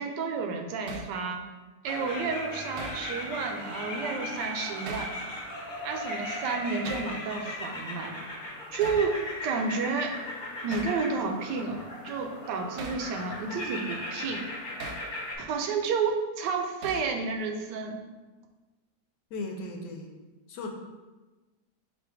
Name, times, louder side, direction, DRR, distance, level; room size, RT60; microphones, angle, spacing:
voice 1, 0.0-1.5 1.8-5.3 5.8-8.2 8.7-10.2 10.6-14.5 15.4-18.0, right 4 dB, 85° right, 4 dB, 1.2 m, -31 dB
Hammer, 0.9-1.1 2.8-3.0 4.9-5.2 6.8-7.1 8.8-9.1 10.7-11.0 12.8-13.1 14.8-15.1 16.8-17.1, right 2 dB, 65° right, 0.8 m, -39 dB
sound 1, 1.8-15.4, left 1 dB, 40° left, 0.8 m, -37 dB
voice 2, 19.3-20.1 20.5-20.7, left 2 dB, 85° left, 2 dB, 1.2 m, -36 dB
4.1 x 2.6 x 4.7 m, 1.2 s
omnidirectional pair, 1.8 m